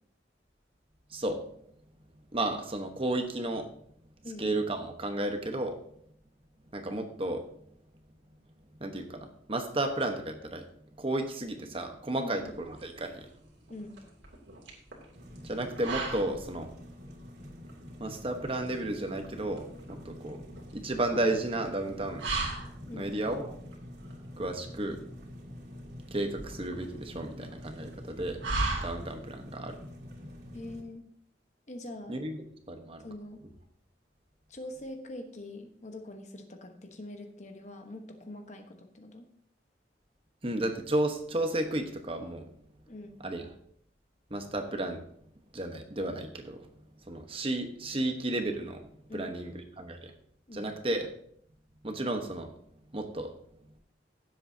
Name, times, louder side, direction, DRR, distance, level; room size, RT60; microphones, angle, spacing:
voice 1, 2.3-3.7 4.4-5.8 6.7-7.4 8.8-10.7 11.0-13.2 15.4-16.7 18.0-20.4 20.7-22.2 22.9-23.5 24.4-25.0 26.1-28.4 28.8-29.8 32.1-33.0 40.4-42.5 43.2-43.5 44.3-45.0 45.5-46.6 47.1-48.8 49.1-49.5 49.8-50.1 50.5-51.1 51.8-52.5 52.9-53.3, right 1 dB, 30° right, 5 dB, 1.1 m, -33 dB
voice 2, 12.2-12.5 13.7-14.0 22.9-23.1 30.5-31.1 31.7-32.2 33.0-33.4 34.5-39.3 42.9-43.2 49.1-49.3 50.5-50.7, left 1 dB, 40° left, 5 dB, 1.1 m, -43 dB
sound 1, 12.4-29.4, right 3 dB, 85° right, 2.8 m, -39 dB
sound 2, 15.1-30.8, left 1 dB, 70° right, 2.8 m, -47 dB
16.0 x 7.7 x 2.8 m, 0.65 s
head